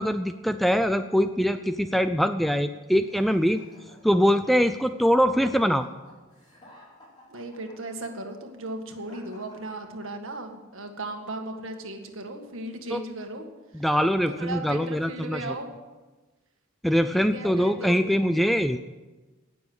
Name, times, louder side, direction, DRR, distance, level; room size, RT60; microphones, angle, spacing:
voice 1, 0.0-3.6 4.0-5.9 12.9-13.0 13.7-15.5 16.8-18.8, equal, ahead, 10 dB, 0.3 m, -23 dB
sound 1, 3.0-10.4, left 1 dB, 20° left, 5.4 m, -54 dB
voice 2, 7.3-13.5 13.8-13.9 14.3-15.7 17.1-18.3, right 2 dB, 60° right, 4 dB, 1.9 m, -36 dB
18.0 x 7.0 x 8.0 m, 1.2 s
head